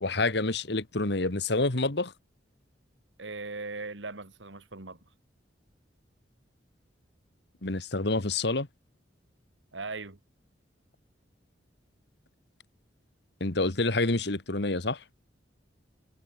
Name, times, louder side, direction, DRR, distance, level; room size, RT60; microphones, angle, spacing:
voice 1, 0.0-2.1 7.6-8.7 13.4-15.0, left 2 dB, 65° left, 1.8 m, -28 dB
voice 2, 3.2-5.0 9.7-10.2, right 3 dB, 85° right, 2.2 m, -39 dB
head